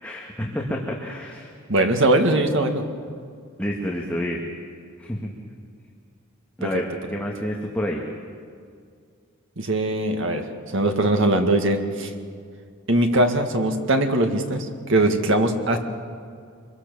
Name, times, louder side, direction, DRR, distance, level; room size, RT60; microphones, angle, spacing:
voice 1, 0.0-1.5 3.6-4.4 5.0-5.3 6.6-8.0, equal, 5° left, -2 dB, 1.8 m, -29 dB
voice 2, 1.7-2.8 6.6-6.7 9.6-10.5 10.7-12.1 12.9-15.8, right 1 dB, 60° right, 5 dB, 2.0 m, -21 dB
26.0 x 23.0 x 7.1 m, 2.2 s
head